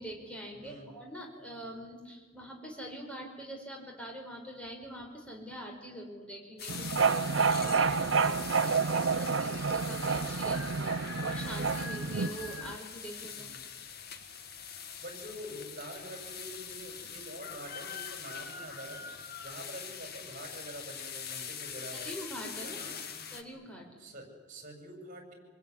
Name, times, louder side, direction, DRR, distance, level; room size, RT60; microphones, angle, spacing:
voice 1, 0.0-7.9 8.2-13.5 21.9-22.9 23.3-23.9, equal, 5° left, 0 dB, 5.4 m, -44 dB
voice 2, 0.6-0.9 7.7-8.2 13.3-13.6 15.0-19.1 19.4-22.1 22.6-23.2 24.0-25.3, equal, 40° right, 4 dB, 7.1 m, -46 dB
sound 1, 6.6-23.4, left 7 dB, 50° left, 2.1 m, -43 dB
sound 2, 6.7-12.8, right 5 dB, 65° right, 0.8 m, -29 dB
27.0 x 21.0 x 10.0 m, 1.4 s
head